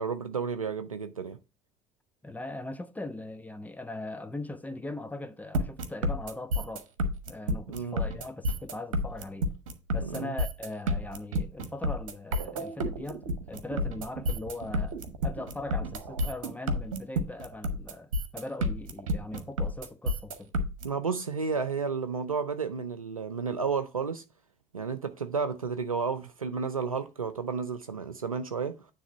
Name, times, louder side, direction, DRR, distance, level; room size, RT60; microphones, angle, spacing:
voice 1, 0.0-1.4 7.7-8.0 10.0-10.3 20.8-24.2 24.7-28.9, right 5 dB, 90° right, 0.4 m, -32 dB
voice 2, 2.2-6.9 7.3-9.5 9.9-20.5, left 2 dB, 10° left, 0.6 m, -40 dB
sound 1, 5.5-20.8, equal, 70° right, 1.1 m, -30 dB
9.6 x 3.3 x 5.5 m
figure-of-eight pair, 60°, 17 cm